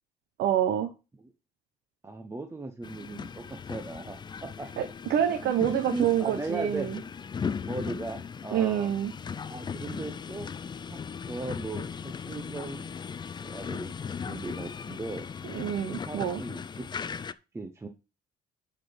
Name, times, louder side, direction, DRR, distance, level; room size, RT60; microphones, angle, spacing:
voice 1, 0.4-0.9 4.8-7.0 8.5-9.1 15.5-16.4, right 10 dB, 75° right, 7 dB, 1.0 m, -27 dB
voice 2, 2.0-4.7 5.4-7.0 7.6-8.9 9.5-10.5 10.9-11.0 11.2-15.2 15.9-16.9 17.5-17.9, right 2 dB, 15° right, 5 dB, 0.9 m, -38 dB
sound 1, 2.8-17.3, left 6 dB, 25° left, 0.5 m, -38 dB
11.5 x 4.4 x 5.1 m, 0.31 s
cardioid pair, 110°, 17 cm